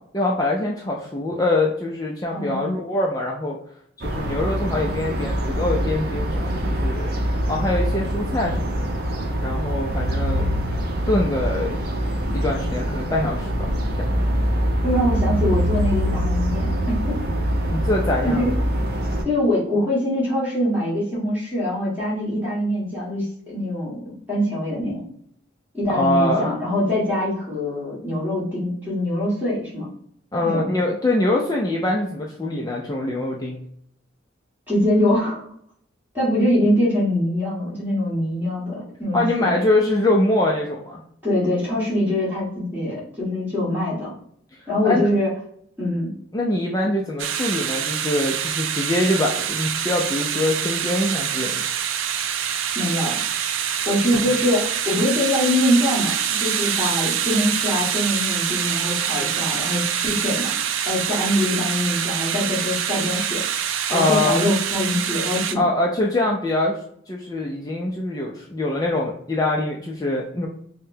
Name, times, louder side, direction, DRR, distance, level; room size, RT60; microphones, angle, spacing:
voice 1, 0.1-3.6 4.0-7.1 7.5-8.9 9.4-10.5 11.1-11.8 12.3-13.7 17.7-18.5 25.9-26.5 30.3-33.6 39.1-41.0 44.8-45.1 46.3-51.5 54.1-54.3 63.9-64.5 65.5-66.8 67.1-70.5, left 1 dB, 20° left, -1 dB, 0.4 m, -23 dB
voice 2, 2.3-2.7 14.8-16.9 18.2-18.5 19.2-25.0 25.7-29.9 30.4-30.6 34.7-35.4 36.1-39.5 41.2-44.1 44.7-45.3 45.8-46.1 52.7-53.3 53.8-60.5 60.8-63.4 63.9-65.6, left 1 dB, 10° right, -8 dB, 1.6 m, -23 dB
sound 1, 4.0-19.2, equal, 50° right, 0.7 m, -24 dB
sound 2, 47.2-65.5, right 9 dB, 90° right, 0.4 m, -25 dB
5.5 x 2.1 x 2.7 m, 0.66 s
head